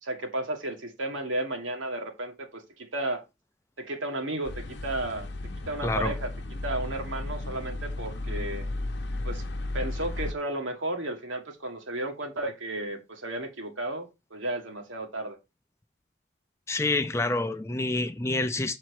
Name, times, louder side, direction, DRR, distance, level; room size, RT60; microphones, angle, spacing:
voice 1, 0.0-3.2 3.8-5.3 5.7-6.3 6.6-8.7 9.2-9.4 9.7-15.4, right 1 dB, 85° right, 1.8 m, -33 dB
sound 1, 4.4-10.3, left 2 dB, 60° left, 0.8 m, -34 dB
voice 2, 5.8-6.1 16.7-18.8, left 2 dB, 15° left, 0.4 m, -27 dB
7.0 x 4.4 x 4.7 m
head